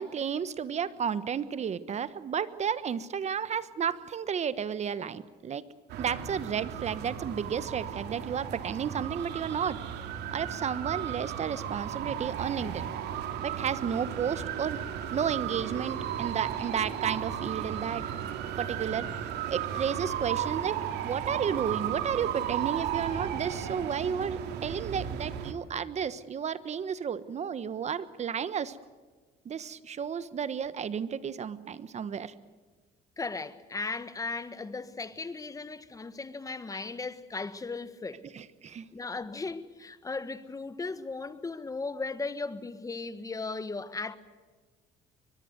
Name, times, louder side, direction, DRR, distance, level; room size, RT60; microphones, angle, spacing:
voice 1, 0.0-5.6 6.0-9.8 10.3-12.9 13.4-14.8 15.1-18.1 18.6-19.1 19.5-28.8 29.4-32.3 38.3-38.8, right 7 dB, 40° right, 1.2 m, -32 dB
sound 1, 5.9-25.5, right 9 dB, 85° right, 2.4 m, -35 dB
voice 2, 33.2-38.3 38.9-44.2, left 3 dB, 20° left, 1.4 m, -36 dB
23.0 x 22.0 x 8.1 m
cardioid pair, 110°, 17 cm